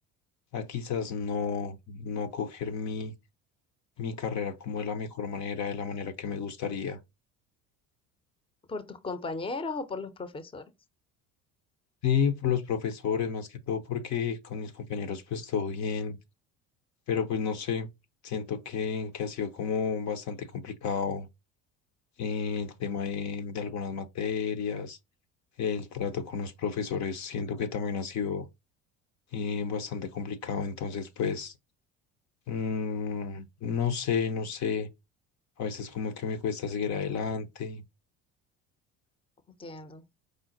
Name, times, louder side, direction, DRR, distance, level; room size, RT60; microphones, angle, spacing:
voice 1, 0.5-3.1 4.0-7.0 12.0-16.2 17.1-17.9 18.2-21.3 22.2-25.0 25.6-28.5 29.3-31.5 32.5-34.9 35.6-37.8, left 6 dB, 50° left, 0.7 m, -31 dB
voice 2, 8.7-10.6 39.5-40.0, left 3 dB, 15° left, 0.6 m, -36 dB
5.0 x 2.0 x 3.8 m
supercardioid pair, 90°, 35 cm